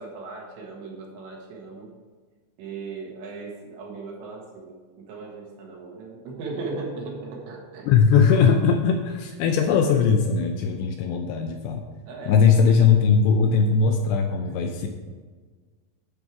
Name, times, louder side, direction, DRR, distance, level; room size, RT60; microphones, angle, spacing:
voice 1, 0.0-1.9 2.6-7.9 12.1-12.4, right 3 dB, 75° right, -1 dB, 3.7 m, -37 dB
voice 2, 7.8-11.8 12.3-14.9, left 6 dB, 80° left, 4 dB, 2.5 m, -19 dB
12.5 x 5.5 x 4.7 m, 1.5 s
omnidirectional pair, 5.4 m